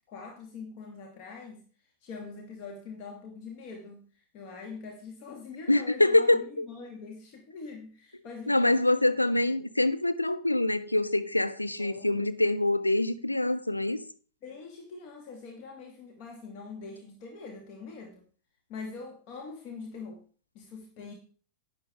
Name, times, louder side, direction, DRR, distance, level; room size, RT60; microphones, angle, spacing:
voice 1, 0.1-1.6 2.0-4.1 4.3-9.1 11.8-12.3 14.4-18.2 18.7-20.2 20.5-21.1, left 4 dB, 45° left, 2.3 m, -43 dB
voice 2, 5.7-6.7 8.5-14.0, left 1 dB, 85° left, 0.8 m, -25 dB
11.5 x 9.7 x 3.6 m
figure-of-eight pair, 90°, 0 cm